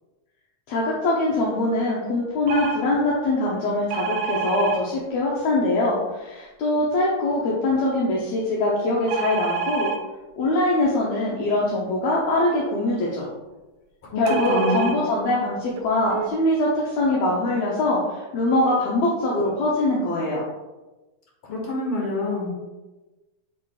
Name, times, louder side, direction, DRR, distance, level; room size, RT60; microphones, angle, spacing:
voice 1, 0.7-9.9 10.4-13.3 14.2-20.4, left 2 dB, 70° left, -4 dB, 1.7 m, -23 dB
sound 1, 2.5-2.8 3.9-4.8 9.1-10.0 14.3-15.0 15.8-15.9 16.1-16.3, right 6 dB, 80° right, 1.8 m, -27 dB
voice 2, 14.1-14.9 21.4-22.6, left 2 dB, 50° left, -2 dB, 2.2 m, -26 dB
8.3 x 4.9 x 2.4 m, 1.1 s
omnidirectional pair, 3.9 m